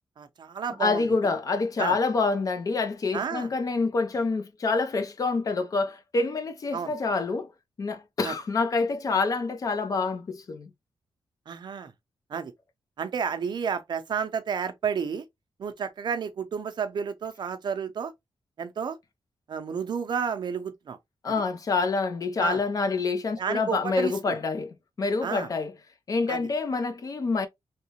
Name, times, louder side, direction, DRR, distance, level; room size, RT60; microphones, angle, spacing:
voice 1, 0.2-1.0 1.8-2.0 3.1-3.5 6.7-6.9 8.2-8.3 11.5-11.9 12.3-12.5 13.0-15.2 15.6-18.1 18.6-19.0 19.5-21.0 22.4-22.6 23.4-24.4 25.2-25.5 26.3-26.4, right 6 dB, 55° right, 0.6 m, -31 dB
voice 2, 0.8-7.5 7.8-10.7 21.2-25.7 26.1-27.5, left 4 dB, 40° left, 0.6 m, -27 dB
3.2 x 2.8 x 2.9 m
wide cardioid pair, 165°, 9 cm